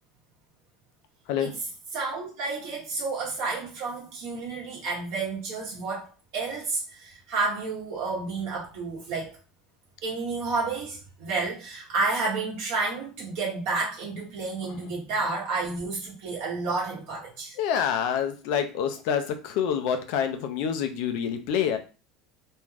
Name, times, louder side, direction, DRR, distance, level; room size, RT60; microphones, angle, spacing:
voice 1, 1.9-9.3 10.0-17.5, right 3 dB, 60° right, -4 dB, 0.9 m, -30 dB
voice 2, 17.6-21.8, left 8 dB, 60° left, 7 dB, 0.5 m, -27 dB
2.5 x 2.2 x 3.2 m, 0.34 s
cardioid pair, 160°, 0 cm